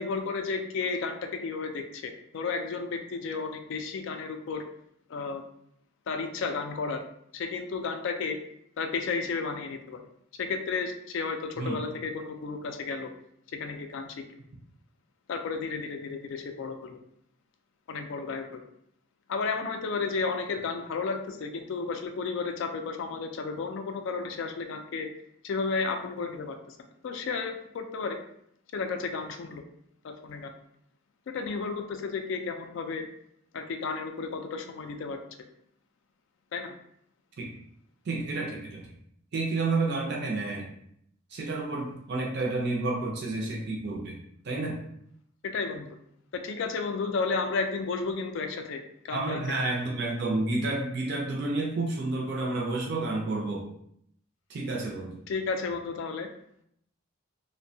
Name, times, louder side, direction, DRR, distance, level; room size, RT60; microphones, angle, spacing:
voice 1, 0.0-4.6 5.1-5.4 6.1-7.0 7.3-8.4 8.8-10.0 10.4-13.1 13.5-14.2 15.3-17.0 17.9-18.6 19.3-25.1 25.4-26.8 27.0-28.2 28.7-29.6 30.0-30.5 31.3-33.1 33.5-35.2 36.5-36.7 45.4-46.0 46.3-49.4 55.3-56.3, left 4 dB, 55° left, 6 dB, 0.3 m, -32 dB
voice 2, 38.1-38.8 39.3-40.7 41.3-44.2 44.4-44.8 49.1-53.7 54.5-55.2, right 2 dB, 50° right, -1 dB, 0.5 m, -30 dB
2.6 x 2.1 x 2.6 m, 0.71 s
head